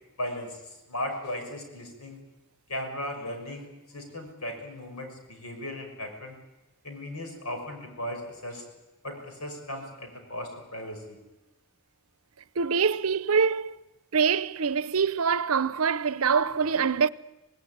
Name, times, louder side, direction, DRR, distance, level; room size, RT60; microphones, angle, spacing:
voice 1, 0.2-2.2 2.7-6.4 6.8-8.6 9.0-11.2, left 1 dB, 85° left, 6.2 m, -37 dB
voice 2, 12.6-13.8 14.1-17.1, right 6 dB, 75° right, 0.8 m, -24 dB
26.0 x 19.0 x 9.5 m
head